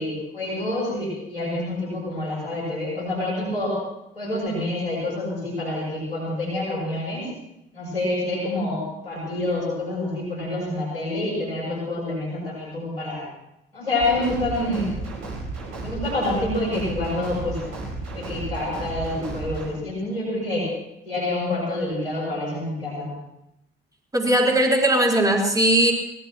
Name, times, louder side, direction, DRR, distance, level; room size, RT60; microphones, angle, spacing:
voice 1, 0.0-3.7 4.1-7.3 7.7-13.2 13.7-14.9 15.8-17.6 18.1-20.7 21.0-23.1, left 1 dB, 90° left, -6 dB, 5.9 m, -27 dB
sound 1, 14.0-19.7, right 3 dB, 65° right, 4.6 m, -33 dB
voice 2, 24.1-25.9, right 1 dB, 10° right, -1 dB, 4.2 m, -19 dB
22.5 x 19.5 x 3.0 m, 0.86 s
figure-of-eight pair, 40°, 29 cm